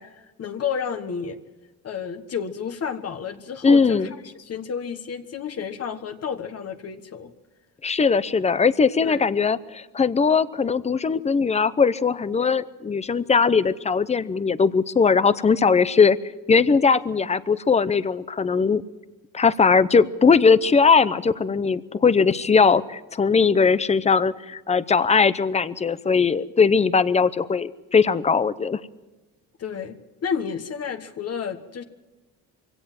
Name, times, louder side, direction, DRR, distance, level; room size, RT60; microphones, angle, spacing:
voice 1, 0.0-1.4 1.8-7.3 9.0-9.2 29.6-31.8, left 7 dB, 45° left, 8 dB, 1.4 m, -31 dB
voice 2, 3.6-4.1 7.8-16.2 16.5-18.8 19.3-28.8, left 5 dB, 20° left, 16 dB, 0.7 m, -19 dB
24.0 x 17.0 x 7.6 m, 1.2 s
cardioid pair, 145°, 35 cm